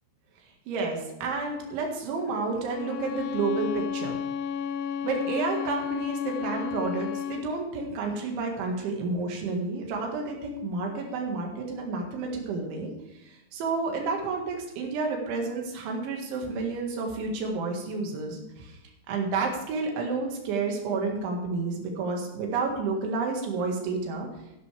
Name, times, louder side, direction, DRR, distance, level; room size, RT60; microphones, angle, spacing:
voice 1, 0.7-4.2 5.0-12.9 13.2-18.8 19.1-24.3, right 4 dB, 85° right, 1 dB, 4.3 m, -30 dB
Bowed string instrument, 2.7-7.5, left 7 dB, 80° left, 2.7 m, -32 dB
14.0 x 11.5 x 3.4 m, 0.97 s
omnidirectional pair, 5.2 m